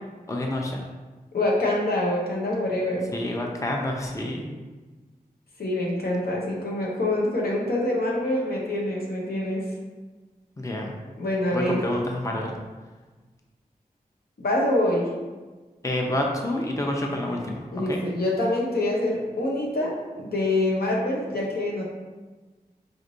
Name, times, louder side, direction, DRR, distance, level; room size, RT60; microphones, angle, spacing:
voice 1, 0.3-0.9 3.1-4.5 10.6-10.9 11.5-12.5 15.8-18.0, left 1 dB, 20° left, 0 dB, 0.6 m, -28 dB
voice 2, 1.3-3.1 5.6-9.6 11.2-11.8 14.4-15.1 17.7-21.8, left 1 dB, 80° left, -3 dB, 0.9 m, -25 dB
5.1 x 3.2 x 2.6 m, 1.3 s
wide cardioid pair, 50°, 16 cm